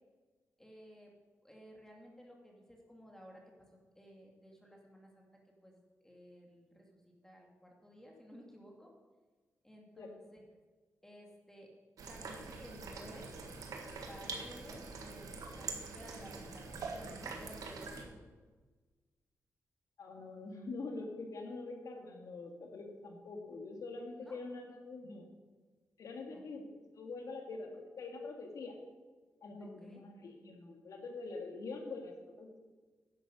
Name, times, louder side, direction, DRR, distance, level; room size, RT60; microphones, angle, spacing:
voice 1, 0.6-1.1 1.4-3.4 3.9-5.3 5.6-5.7 6.0-8.9 9.6-10.4 11.0-11.7 12.1-13.3 14.0-18.1 24.2-24.4 26.3-26.4 29.6-30.1, equal, 10° left, 0 dB, 2.3 m, -55 dB
sound 1, 12.0-18.0, right 4 dB, 80° right, 1.6 m, -44 dB
voice 2, 20.0-25.3 26.0-26.7 27.0-28.8 29.4-32.6, left 3 dB, 75° left, 3 dB, 2.1 m, -45 dB
11.0 x 7.6 x 6.4 m, 1.3 s
cardioid pair, 75°, 6 cm